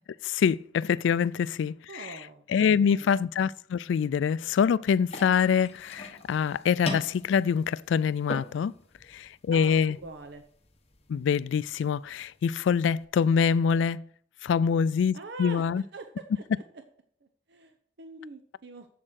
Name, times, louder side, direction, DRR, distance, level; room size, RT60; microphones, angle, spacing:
voice 1, 0.2-2.2 2.5-8.7 9.1-10.0 11.1-14.0 14.4-15.8, left 7 dB, 85° left, 0.3 m, -25 dB
voice 2, 1.9-2.4 2.7-3.2 9.5-10.4 15.1-16.4 17.2-18.9, right 3 dB, 65° right, 0.8 m, -44 dB
sound 1, 5.0-13.1, left 2 dB, 35° left, 1.2 m, -42 dB
7.7 x 7.5 x 6.3 m
head